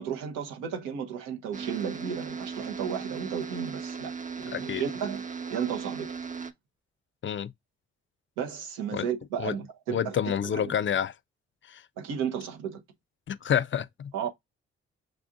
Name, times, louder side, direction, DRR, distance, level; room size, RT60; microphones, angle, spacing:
voice 1, 0.0-6.1 8.4-10.7 12.0-12.8 14.1-14.3, right 8 dB, 85° right, 0.9 m, -34 dB
sound 1, 1.5-6.5, right 5 dB, 25° right, 0.7 m, -37 dB
voice 2, 4.5-4.8 7.2-7.5 8.9-9.1 9.4-9.5 9.9-11.1 11.7-11.8 13.3-14.1, left 9 dB, 40° left, 0.4 m, -28 dB
6.3 x 2.5 x 2.3 m
hypercardioid pair, 45°, 30 cm